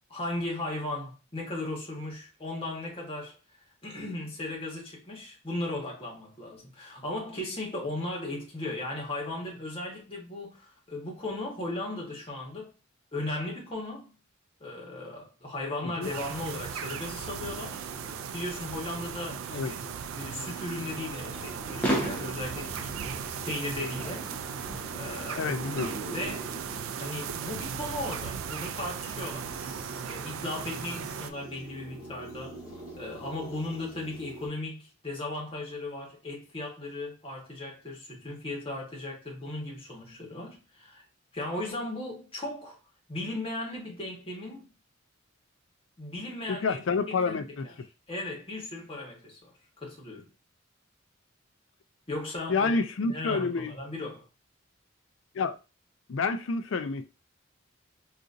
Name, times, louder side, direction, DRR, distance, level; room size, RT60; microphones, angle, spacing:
voice 1, 0.1-3.4 3.8-12.7 13.1-14.1 14.6-17.8 18.3-19.7 20.1-22.9 23.4-24.3 24.9-25.5 26.1-26.6 27.0-29.6 30.1-32.6 33.0-41.0 41.3-42.8 43.1-44.7 46.0-47.7 48.1-50.3 52.1-52.7 53.1-54.2, left 2 dB, 25° left, 1.1 m, -36 dB
sound 1, 16.0-31.3, right 7 dB, 85° right, 0.3 m, -37 dB
sound 2, 17.2-34.5, right 1 dB, 35° right, 1.9 m, -46 dB
sound 3, 21.3-26.4, right 1 dB, 10° left, 0.7 m, -36 dB
voice 2, 25.4-25.9 46.5-47.7 52.5-53.7 55.3-55.6 56.1-57.1, left 4 dB, 70° left, 0.4 m, -28 dB
3.9 x 2.5 x 2.5 m
head